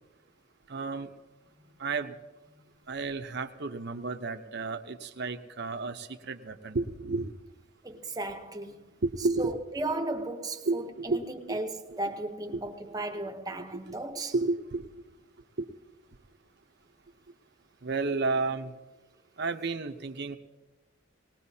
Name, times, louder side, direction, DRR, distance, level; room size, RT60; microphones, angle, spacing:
voice 1, 0.7-1.1 1.8-2.1 2.9-7.3 9.0-9.5 10.7-11.2 11.5-11.6 12.5-12.6 13.9-14.0 14.3-15.0 15.6-15.7 17.8-18.8 19.4-20.4, right 3 dB, 55° right, 0.8 m, -32 dB
voice 2, 7.8-8.8 9.4-14.3, right 2 dB, 20° right, 0.9 m, -35 dB
19.5 x 19.5 x 2.8 m
head